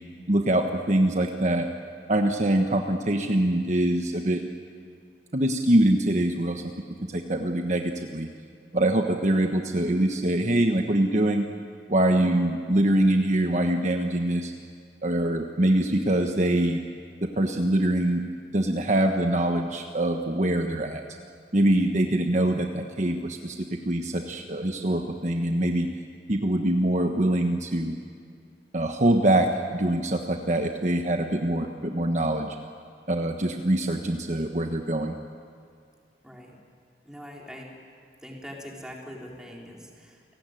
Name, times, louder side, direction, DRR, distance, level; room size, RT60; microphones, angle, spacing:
voice 1, 0.3-1.7 2.1-4.4 5.3-6.6 7.1-8.3 8.7-11.5 11.9-14.5 15.0-16.8 17.4-18.2 18.5-21.0 21.5-25.9 26.3-28.0 28.7-32.5 33.1-35.1, right 1 dB, 40° right, 4 dB, 1.3 m, -24 dB
voice 2, 36.2-36.6 37.0-37.7 38.2-40.2, equal, 5° right, -2 dB, 4.1 m, -42 dB
29.5 x 18.5 x 9.3 m, 2.2 s
head